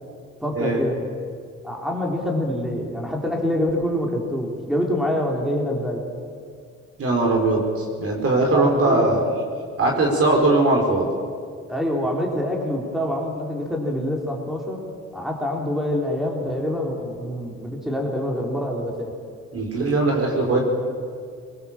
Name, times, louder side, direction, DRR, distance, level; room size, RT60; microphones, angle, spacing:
voice 1, 0.4-1.0 1.6-6.1 8.5-9.2 11.7-14.8 15.1-19.1, left 1 dB, ahead, -1 dB, 3.9 m, -26 dB
voice 2, 7.0-9.2 9.8-11.1 19.5-20.6, right 2 dB, 50° right, 0 dB, 4.6 m, -20 dB
22.0 x 20.0 x 7.5 m, 2.1 s
cardioid pair, 90°, 30 cm